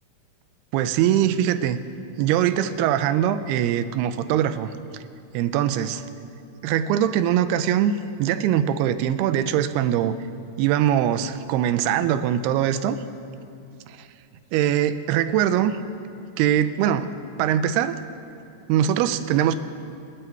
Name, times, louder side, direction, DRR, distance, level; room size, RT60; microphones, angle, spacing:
voice 1, 0.7-1.8 2.2-4.7 5.3-6.0 6.6-10.1 10.6-13.0 13.9-14.1 14.5-15.8 16.4-17.1 17.4-18.0 18.7-19.6, right 10 dB, 85° right, 11 dB, 2.6 m, -22 dB
26.0 x 8.8 x 4.6 m, 2.5 s
omnidirectional pair, 4.6 m